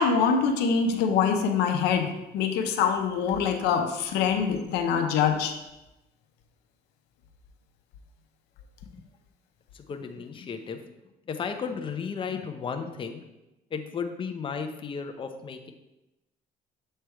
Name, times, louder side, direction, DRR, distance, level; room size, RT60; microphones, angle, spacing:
voice 1, 0.0-5.5, left 6 dB, 90° left, 5 dB, 0.7 m, -24 dB
voice 2, 9.7-10.8 11.3-13.2 13.7-15.7, left 6 dB, 30° left, 6 dB, 0.6 m, -34 dB
7.3 x 3.3 x 4.5 m, 0.97 s
cardioid pair, 110°, 17 cm